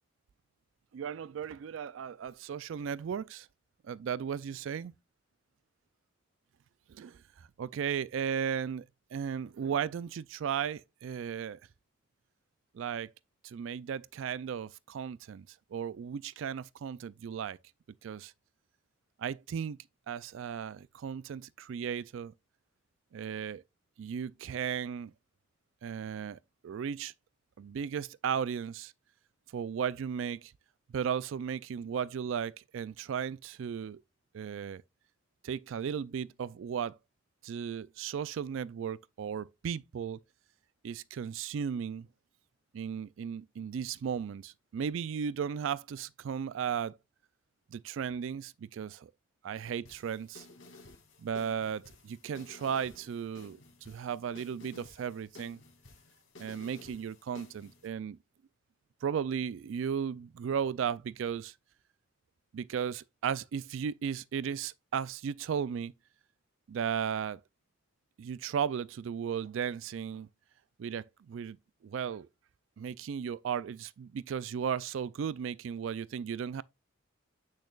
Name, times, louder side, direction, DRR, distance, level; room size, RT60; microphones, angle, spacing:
voice 1, 0.9-3.5 3.9-4.9 6.9-7.2 7.6-8.8 9.1-11.6 12.7-13.1 13.4-15.4 15.7-17.6 18.0-18.3 19.2-19.8 20.1-22.3 23.1-23.6 24.0-25.1 25.8-27.1 27.6-28.9 29.5-30.5 30.9-34.0 34.3-34.8 35.4-37.0 37.4-40.2 40.8-42.1 42.7-47.0 47.7-49.1 49.4-50.5 51.2-53.6 53.9-55.6 56.4-58.2 59.0-61.5 62.5-65.9 66.7-67.4 68.2-70.3 70.8-71.6 71.8-72.3 72.8-76.6, right 7 dB, 70° right, 0.3 m, -35 dB
sound 1, 49.9-57.9, left 2 dB, 70° left, 2.5 m, -54 dB
8.5 x 6.4 x 2.4 m
head